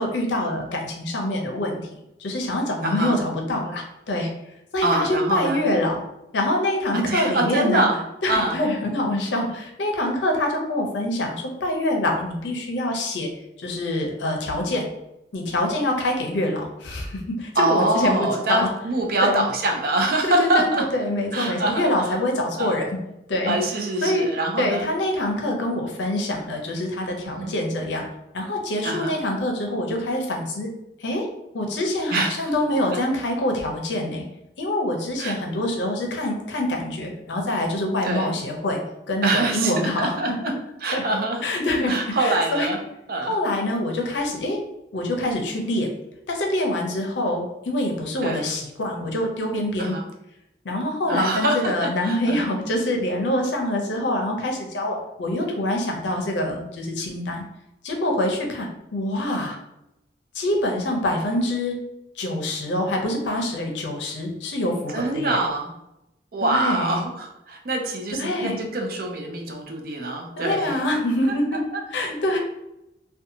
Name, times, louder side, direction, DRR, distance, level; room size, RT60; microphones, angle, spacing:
voice 1, 0.0-1.8 2.2-4.3 4.7-6.0 6.3-7.9 8.2-13.3 13.6-14.9 15.3-18.7 19.2-19.5 20.4-23.0 23.3-23.6 24.0-24.3 24.6-28.0 28.3-30.7 31.0-31.3 31.5-34.2 34.6-38.8 39.1-40.2 40.5-40.6 40.9-41.0 41.4-42.7 43.2-44.6 44.9-45.9 46.3-50.0 50.6-57.4 57.8-59.6 60.3-61.8 62.2-65.4 66.4-67.0 68.2-68.6 70.4-71.6 71.9-72.4, left 1 dB, 75° left, 1 dB, 0.5 m, -25 dB
voice 2, 2.8-3.2 4.8-5.6 6.9-8.6 17.6-20.9 21.3-22.1 22.6-22.8 23.4-24.9 27.2-27.5 28.8-29.2 32.1-32.5 35.2-35.3 38.0-38.3 39.2-40.5 40.8-41.4 41.9-42.8 43.1-43.3 48.2-48.5 49.8-50.1 51.1-52.5 64.9-65.7 66.3-70.8 71.7-71.8, right 2 dB, 50° right, 3 dB, 0.4 m, -25 dB
2.7 x 2.2 x 2.6 m, 0.88 s
head